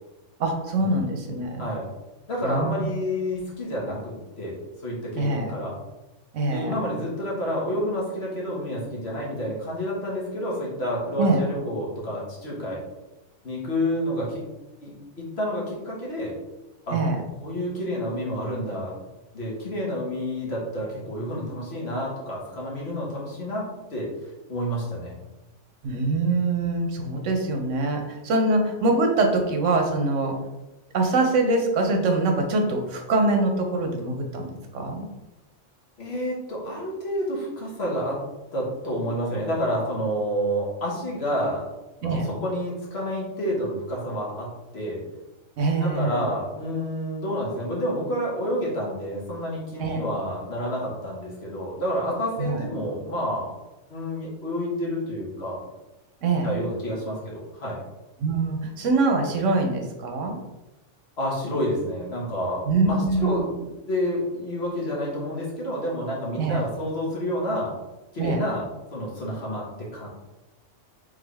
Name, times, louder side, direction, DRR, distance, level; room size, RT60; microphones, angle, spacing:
voice 1, 0.4-1.7 2.4-2.9 5.2-5.5 6.3-6.7 11.2-11.4 16.9-17.2 25.8-30.4 30.9-35.1 42.0-42.3 45.6-46.3 49.8-50.0 52.4-52.6 56.2-56.5 58.2-60.4 62.7-63.5 66.4-66.6 68.2-68.5, right 2 dB, 80° right, 3 dB, 1.1 m, -24 dB
voice 2, 2.3-4.6 4.8-5.7 6.5-12.8 13.4-14.4 14.8-16.3 16.8-17.0 17.4-19.0 19.3-23.6 23.9-24.1 24.5-25.1 36.0-38.2 38.5-41.6 42.0-44.5 44.7-45.0 45.8-53.5 53.9-55.6 56.4-57.8 61.2-63.6 63.9-67.7 68.1-70.1, equal, 55° left, -4 dB, 1.5 m, -29 dB
3.8 x 3.5 x 3.4 m, 1.0 s
omnidirectional pair, 1.3 m